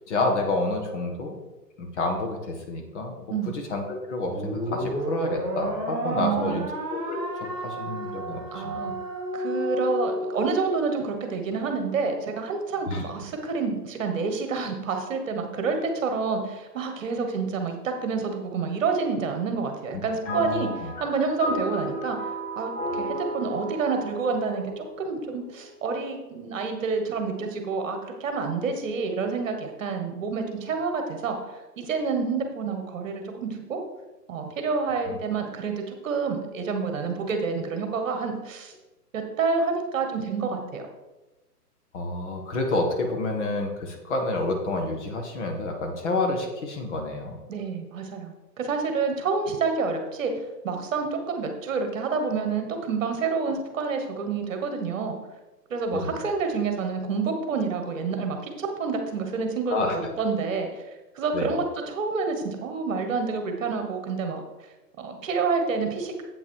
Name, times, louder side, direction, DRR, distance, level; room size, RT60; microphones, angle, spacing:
voice 1, 0.1-1.4 1.8-6.6 6.9-7.2 7.6-8.9 12.9-13.0 20.3-20.9 35.1-35.2 41.9-47.4 55.9-56.2 59.7-60.1 61.3-61.5, left 2 dB, 45° left, 3 dB, 1.6 m, -29 dB
sound 1, 4.3-10.8, right 1 dB, 10° right, 1.4 m, -31 dB
voice 2, 6.1-6.6 8.5-8.9 9.3-20.7 21.0-22.2 22.6-31.4 31.8-33.8 34.3-38.7 39.1-40.8 47.5-55.2 55.7-60.7 61.1-64.4 65.0-66.1, right 4 dB, 50° right, 5 dB, 1.5 m, -28 dB
sound 2, 20.2-25.8, equal, 25° left, 1.8 m, -33 dB
8.1 x 5.8 x 4.6 m, 1.1 s
hypercardioid pair, 155°, 49 cm